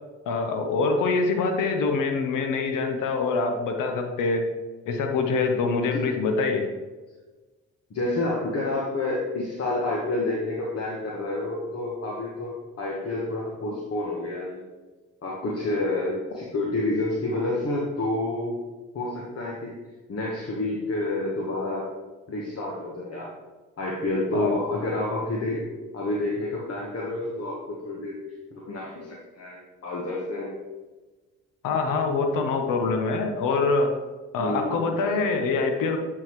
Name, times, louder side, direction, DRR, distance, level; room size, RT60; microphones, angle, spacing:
voice 1, 0.3-4.4 4.9-6.7 24.3-24.5 31.6-33.9 34.3-36.0, left 4 dB, 75° left, 4 dB, 0.9 m, -25 dB
voice 2, 7.9-14.6 15.2-18.6 18.9-19.7 20.1-21.9 22.3-23.3 23.8-25.7 25.9-28.2 28.5-30.6 34.4-34.8, left 2 dB, 50° left, -3 dB, 1.2 m, -29 dB
8.7 x 3.9 x 3.0 m, 1.3 s
supercardioid pair, 55°, 32 cm